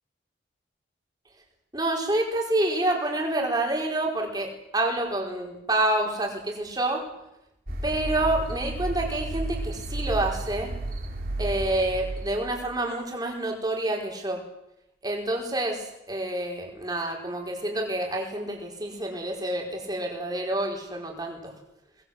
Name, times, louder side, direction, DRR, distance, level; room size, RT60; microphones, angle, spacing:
voice 1, 1.7-7.0 7.8-10.7 11.4-14.4 15.0-21.5, right 1 dB, 20° right, 1 dB, 4.7 m, -28 dB
sound 1, 7.7-12.6, right 2 dB, 50° right, 4.1 m, -32 dB
23.5 x 20.0 x 8.0 m, 0.87 s
head